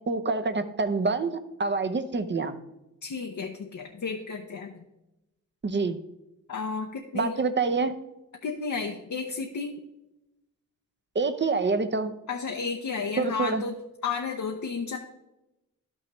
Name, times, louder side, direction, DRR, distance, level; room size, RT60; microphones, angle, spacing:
voice 1, 0.1-2.6 5.6-6.0 7.1-7.9 11.1-12.1 13.2-13.6, right 4 dB, 35° right, 10 dB, 0.7 m, -26 dB
voice 2, 3.0-4.8 6.5-7.3 8.4-9.8 12.3-13.8 14.0-15.0, left 5 dB, 65° left, 3 dB, 0.8 m, -32 dB
12.0 x 6.3 x 3.1 m, 0.94 s
cardioid pair, 60°, 32 cm